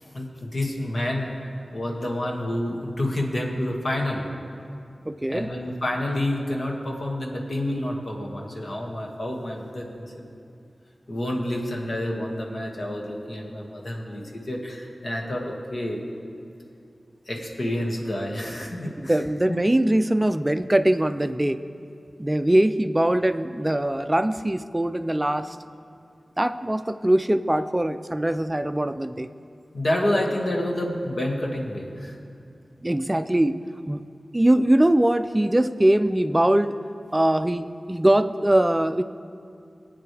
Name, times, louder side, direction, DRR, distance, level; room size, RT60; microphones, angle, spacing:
voice 1, 0.0-1.3 1.7-4.3 5.3-10.3 11.1-16.0 17.3-19.2 19.5-19.6 29.7-32.2, left 1 dB, 65° left, -1 dB, 1.9 m, -28 dB
voice 2, 5.1-5.5 19.0-21.6 22.2-25.6 26.4-29.3 32.8-33.6 33.9-34.0 34.3-36.7 37.1-39.0, right 1 dB, 20° right, 10 dB, 0.4 m, -22 dB
21.0 x 8.6 x 3.4 m, 2.4 s
cardioid pair, 50°, 0 cm